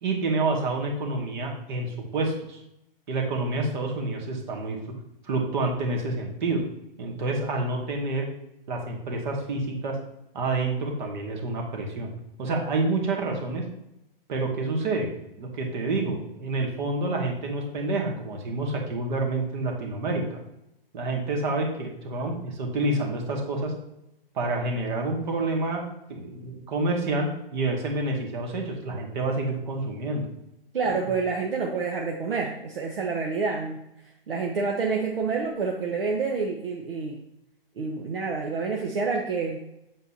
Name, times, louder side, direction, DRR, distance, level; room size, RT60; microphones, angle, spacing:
voice 1, 0.0-2.6 3.1-4.8 5.2-6.6 7.0-8.3 8.7-10.0 10.3-12.1 12.4-13.7 14.3-15.1 15.4-20.4 20.9-23.7 24.3-30.3, right 2 dB, 50° right, 1 dB, 2.2 m, -28 dB
voice 2, 30.7-37.2 37.8-39.6, right 4 dB, 70° right, 0 dB, 1.3 m, -28 dB
7.9 x 7.8 x 2.8 m, 0.84 s
hypercardioid pair, 130°, 29 cm